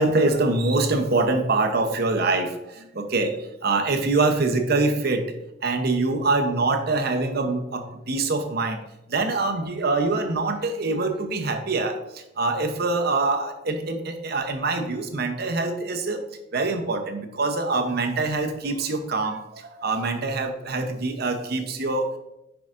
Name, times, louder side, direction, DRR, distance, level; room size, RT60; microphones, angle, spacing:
voice 1, 0.0-2.5 3.0-3.3 3.6-5.2 5.6-8.8 9.1-12.0 12.4-16.2 16.5-19.4 19.8-22.2, right 3 dB, 60° right, 6 dB, 0.8 m, -24 dB
10.5 x 4.8 x 2.5 m, 0.90 s
head